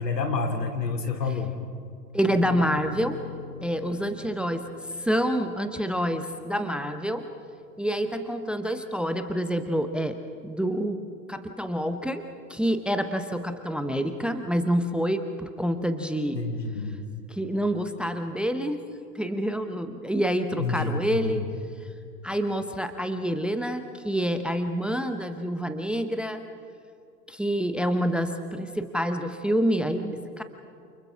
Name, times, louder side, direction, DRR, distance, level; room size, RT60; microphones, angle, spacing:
voice 1, 0.0-1.6 16.3-17.0 20.6-21.5, left 4 dB, 80° left, 5 dB, 3.0 m, -28 dB
voice 2, 2.1-3.2 3.6-4.6 5.0-7.3 7.8-10.2 10.4-11.0 11.3-12.2 12.5-16.4 17.3-18.8 19.1-21.4 22.2-26.4 27.3-30.4, equal, ahead, 8 dB, 0.8 m, -27 dB
sound 1, 2.3-8.8, left 10 dB, 65° left, 5.1 m, -44 dB
29.0 x 29.0 x 3.7 m, 2.4 s
figure-of-eight pair, 105°, 48 cm